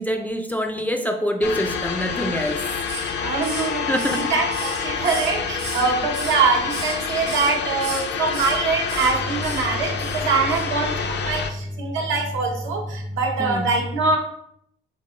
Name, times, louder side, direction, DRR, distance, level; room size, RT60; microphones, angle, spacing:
voice 1, 0.0-2.7 3.9-4.3 5.8-5.9 11.3-11.4 11.8-12.0 12.9-13.7, equal, 10° left, 5 dB, 0.4 m, -26 dB
sound 1, 1.4-11.5, left 6 dB, 60° left, 0.5 m, -28 dB
Hiss, 2.4-3.2 3.4-5.9 6.1-7.0 7.2-7.5 7.8-8.6 8.9-9.1 9.4-9.6 10.0-10.2 10.5-10.6, right 3 dB, 60° right, 1.4 m, -35 dB
voice 2, 3.2-3.9 4.1-14.2, right 4 dB, 75° right, 0 dB, 1.1 m, -23 dB
3.8 x 2.9 x 3.7 m, 0.72 s
cardioid pair, 90°, 20 cm